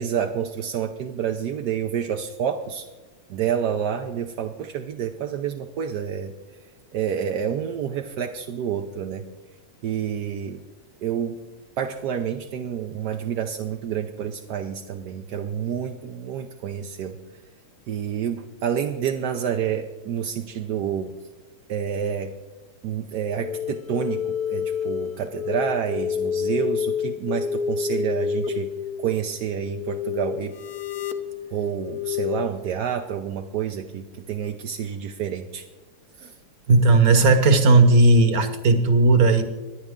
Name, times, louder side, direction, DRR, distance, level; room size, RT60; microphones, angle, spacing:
voice 1, 0.0-2.9 3.3-6.3 6.9-9.2 9.8-10.6 11.0-11.4 11.8-17.2 17.9-21.1 21.7-22.3 22.8-28.7 29.0-30.6 31.5-35.6 36.2-36.3, right 8 dB, 65° right, 4 dB, 1.0 m, -28 dB
sound 1, 23.3-32.5, left 7 dB, 60° left, 1.0 m, -29 dB
voice 2, 36.7-39.4, right 3 dB, 50° right, 8 dB, 1.4 m, -16 dB
25.0 x 10.0 x 3.7 m, 1.2 s
omnidirectional pair, 2.4 m